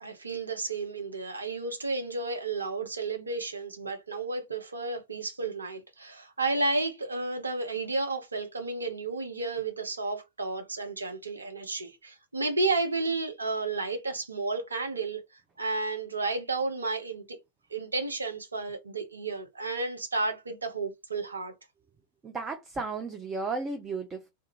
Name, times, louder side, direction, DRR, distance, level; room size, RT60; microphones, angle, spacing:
voice 1, 0.0-15.2 15.6-17.4 17.7-21.5, right 3 dB, 75° right, 0.5 m, -32 dB
voice 2, 22.2-24.3, right 3 dB, 20° right, 0.5 m, -34 dB
2.3 x 2.2 x 3.0 m
figure-of-eight pair, 90°, 0 cm